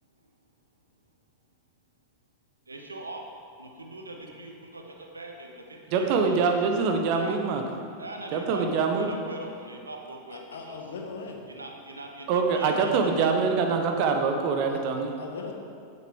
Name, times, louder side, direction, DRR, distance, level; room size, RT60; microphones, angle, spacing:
voice 1, 2.7-3.2 3.6-6.4 7.1-7.4 8.0-10.8 11.5-13.3, right 2 dB, 80° right, 2 dB, 0.9 m, -41 dB
voice 2, 5.9-7.6 8.3-9.1 12.3-15.1, right 5 dB, 45° right, 4 dB, 0.9 m, -24 dB
voice 3, 10.3-11.4 14.7-14.8 15.2-15.5, left 5 dB, 60° left, 1 dB, 1.1 m, -39 dB
8.6 x 7.9 x 3.6 m, 2.3 s
figure-of-eight pair, 90°, 0 cm